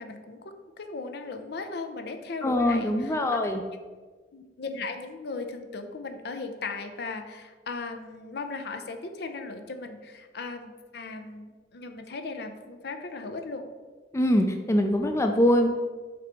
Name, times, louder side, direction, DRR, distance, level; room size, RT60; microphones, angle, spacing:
voice 1, 0.0-3.4 4.3-13.6, left 3 dB, 65° left, 7 dB, 0.6 m, -37 dB
voice 2, 2.4-3.6 14.1-15.7, left 1 dB, 15° left, 5 dB, 0.3 m, -23 dB
5.7 x 3.4 x 5.1 m, 1.4 s
head